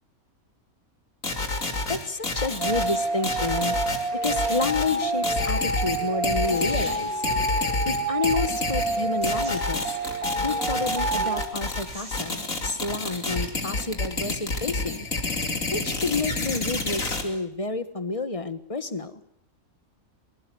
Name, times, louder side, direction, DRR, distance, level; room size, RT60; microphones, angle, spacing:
sound 1, 1.2-17.2, left 2 dB, 65° left, 3.3 m, -29 dB
voice 1, 1.3-3.8 4.1-7.2 7.8-10.0 10.4-15.1 15.7-19.2, left 3 dB, 25° left, 12 dB, 1.2 m, -30 dB
sound 2, 2.6-11.5, right 2 dB, 90° right, 4.2 m, -28 dB
sound 3, 4.4-5.1 6.0-6.1 6.4-7.4 9.2-9.9 11.9-12.4, right 1 dB, 45° right, 5.6 m, -44 dB
24.0 x 21.5 x 7.8 m, 0.74 s
omnidirectional pair, 1.5 m